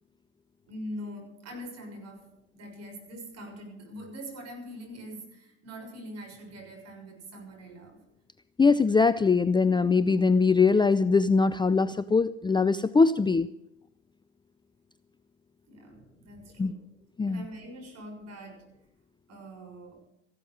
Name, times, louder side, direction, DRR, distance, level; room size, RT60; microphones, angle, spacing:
voice 1, 0.7-8.0 15.7-16.8 17.3-18.8 19.3-20.1, equal, 45° right, 3 dB, 6.7 m, -43 dB
voice 2, 8.6-13.5 16.6-16.7 17.2-17.4, left 4 dB, 15° left, 15 dB, 0.5 m, -22 dB
15.5 x 12.5 x 6.2 m, 0.78 s
hypercardioid pair, 70°, 35 cm